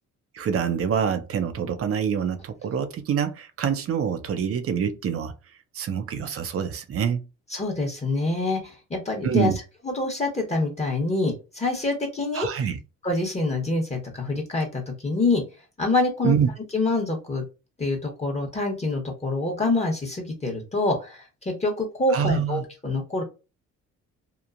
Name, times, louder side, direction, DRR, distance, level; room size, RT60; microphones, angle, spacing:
voice 1, 0.3-5.3 5.7-7.2 9.2-9.6 12.3-12.8 16.2-16.5 22.1-22.6, right 7 dB, 50° right, 0.5 m, -25 dB
voice 2, 7.5-9.5 9.8-12.5 13.0-15.4 15.8-16.3 16.7-17.4 17.8-23.2, left 2 dB, 20° left, 0.9 m, -26 dB
2.9 x 2.1 x 2.4 m
cardioid pair, 90°, 30 cm